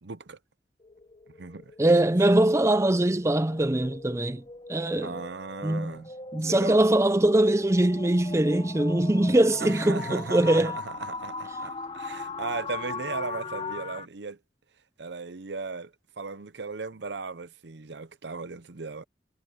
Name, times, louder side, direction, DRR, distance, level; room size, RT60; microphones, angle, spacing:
voice 1, 0.0-0.4 1.4-1.7 2.0-2.1 5.0-6.1 6.4-6.8 9.6-14.4 15.0-19.0, right 4 dB, 75° right, 0.8 m, -37 dB
sound 1, 0.8-14.1, left 3 dB, 30° left, 1.3 m, -39 dB
voice 2, 1.8-4.4 4.7-5.1 5.6-6.0 6.3-10.7, right 1 dB, 15° right, 0.5 m, -22 dB
head